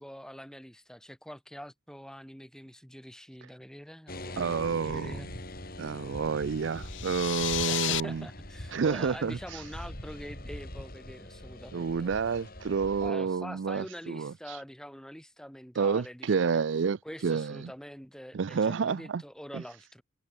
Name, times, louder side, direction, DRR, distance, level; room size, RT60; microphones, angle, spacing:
voice 1, 0.0-4.4 4.8-5.3 7.6-12.1 13.0-16.6 17.0-20.0, equal, 5° left, 5.6 m, -45 dB
sound 1, 4.1-13.1, left 1 dB, 45° left, 6.0 m, -43 dB
voice 2, 4.4-5.2 5.8-8.3 8.7-9.6 11.7-14.6 15.8-17.0 17.2-17.7 18.3-19.2 19.5-19.6, right 5 dB, 60° right, 0.4 m, -29 dB
sound 2, 6.8-8.0, left 15 dB, 60° left, 0.7 m, -32 dB
head